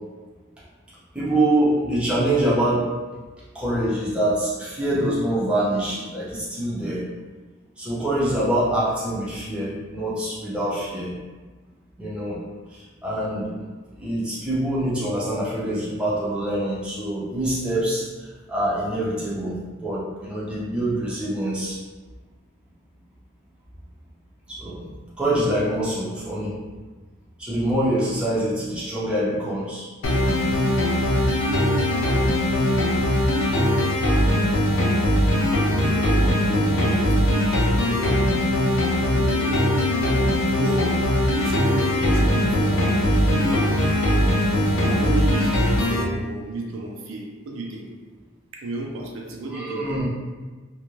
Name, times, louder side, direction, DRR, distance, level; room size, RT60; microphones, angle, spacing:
voice 1, 1.1-2.9 3.5-7.0 7.8-11.1 12.0-12.4 12.7-13.7 14.0-21.8 24.5-24.8 25.2-26.5 27.4-29.9 49.5-50.0, right 1 dB, 5° right, -9 dB, 0.6 m, -25 dB
sound 1, 30.0-46.0, left 1 dB, 90° left, 0.5 m, -20 dB
voice 2, 35.8-38.2 39.0-39.6 40.5-40.9 41.3-43.8 44.8-47.9 48.5-50.0, right 2 dB, 70° right, -1 dB, 0.4 m, -33 dB
2.4 x 2.2 x 3.0 m, 1.3 s
head